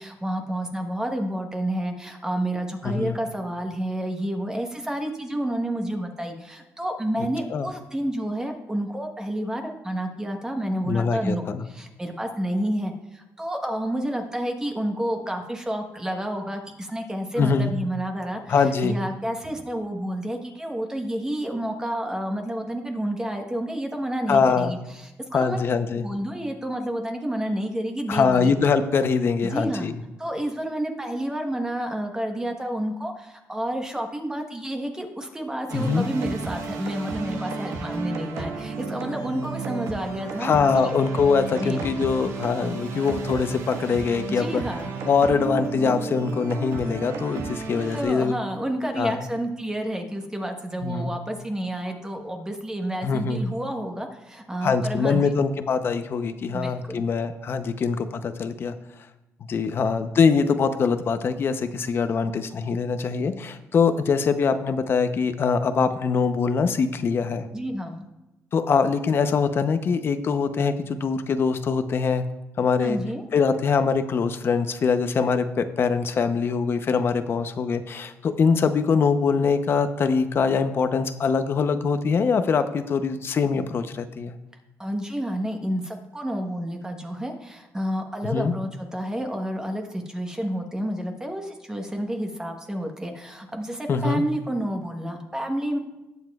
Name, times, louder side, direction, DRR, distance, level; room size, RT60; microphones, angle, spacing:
voice 1, 0.0-25.6 26.0-28.5 29.4-29.9 30.2-40.9 41.5-41.8 44.3-44.9 47.9-55.4 56.5-57.0 67.5-68.0 72.8-73.2 84.8-95.8, right 1 dB, 10° right, 3 dB, 1.1 m, -30 dB
voice 2, 2.8-3.2 7.5-7.7 10.8-11.7 17.4-17.7 18.5-18.9 24.3-24.8 25.3-26.0 28.1-29.9 35.7-36.0 40.4-44.6 45.0-48.3 49.0-49.2 50.8-51.1 53.0-53.4 54.6-58.7 59.5-67.5 68.5-72.2 72.6-73.0 73.3-84.3 88.3-88.5 93.9-94.2, left 5 dB, 45° left, 9 dB, 0.7 m, -23 dB
sound 1, 35.7-48.0, right 4 dB, 75° right, 1.4 m, -33 dB
19.0 x 7.2 x 2.3 m, 0.98 s
cardioid pair, 115°, 5 cm